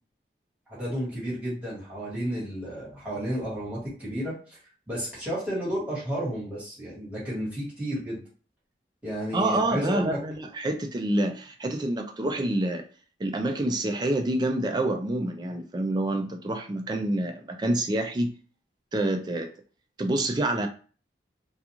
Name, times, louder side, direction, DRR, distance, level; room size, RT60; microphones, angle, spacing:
voice 1, 0.7-4.6 4.9-8.2 9.0-10.2, equal, 10° right, -8 dB, 1.3 m, -32 dB
voice 2, 9.3-12.8 13.2-18.3 18.9-19.5 20.0-20.7, right 1 dB, 25° right, 4 dB, 0.3 m, -27 dB
2.4 x 2.3 x 2.9 m, 0.40 s
head